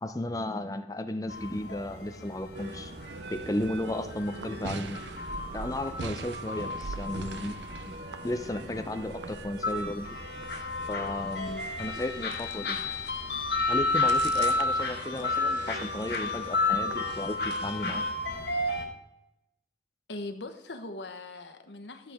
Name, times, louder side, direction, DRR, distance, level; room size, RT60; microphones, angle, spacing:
voice 1, 0.0-2.9 3.3-5.0 5.5-7.6 7.9-8.0 8.2-10.2 10.9-12.8 13.7-18.1, left 1 dB, 20° left, 8 dB, 0.6 m, -34 dB
sound 1, 1.3-18.8, left 3 dB, 65° left, 2.7 m, -32 dB
sound 2, 2.5-18.1, right 3 dB, 85° right, 0.6 m, -42 dB
voice 2, 20.1-22.1, left 2 dB, 85° left, 7 dB, 1.2 m, -40 dB
13.5 x 7.3 x 3.6 m, 0.88 s
head